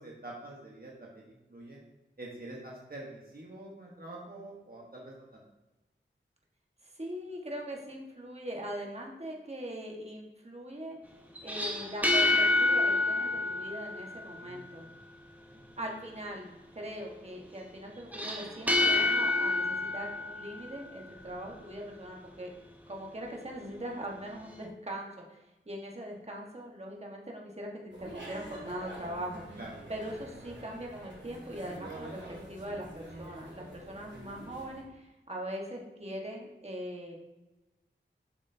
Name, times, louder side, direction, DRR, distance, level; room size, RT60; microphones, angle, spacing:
voice 1, 0.0-1.8 2.2-5.4 14.4-14.6 15.5-15.6 29.6-29.7, right 2 dB, 50° right, -3 dB, 1.3 m, -46 dB
voice 2, 6.8-11.0 11.4-14.9 15.8-22.5 22.9-29.6 29.9-37.2, right 1 dB, 30° right, -1 dB, 1.5 m, -41 dB
sound 1, 11.4-14.9 18.1-21.7, left 2 dB, 10° right, 0.9 m, -29 dB
sound 2, 27.9-34.8, right 1 dB, 65° right, 2.1 m, -46 dB
7.2 x 6.4 x 2.8 m, 1.0 s
wide cardioid pair, 45°, 20 cm